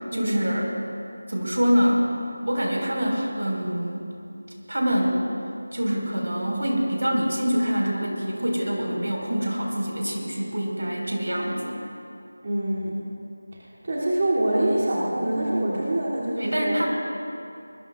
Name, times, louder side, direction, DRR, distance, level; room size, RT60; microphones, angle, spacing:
voice 1, 0.1-0.7 1.3-2.1 2.4-4.1 4.7-5.2 5.7-11.8 16.4-16.9, equal, 80° right, -1 dB, 5.0 m, -25 dB
voice 2, 12.4-13.0 13.8-16.8, right 1 dB, 40° right, -8 dB, 3.0 m, -25 dB
24.0 x 21.5 x 2.5 m, 2.6 s
figure-of-eight pair, 170°, 0 cm